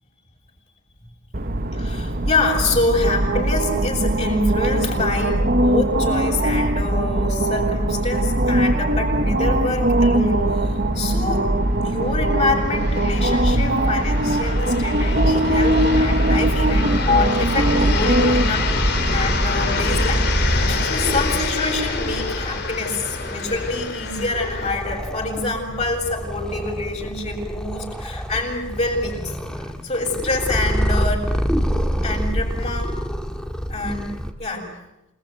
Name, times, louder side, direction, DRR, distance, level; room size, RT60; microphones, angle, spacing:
sound 1, 1.3-20.8, right 1 dB, 45° right, 1.4 m, -21 dB
voice 1, 1.7-11.4 11.8-18.8 19.1-29.2 29.8-31.3 32.0-32.9 33.7-34.1 34.4-34.6, left 2 dB, 35° left, -1 dB, 7.5 m, -26 dB
sound 2, 10.7-10.8 11.1-11.2 11.9-24.8, left 4 dB, 55° left, 3.2 m, -28 dB
Purr, 15.0-34.3, equal, 5° left, 1.9 m, -27 dB
28.0 x 20.5 x 9.5 m, 0.92 s
head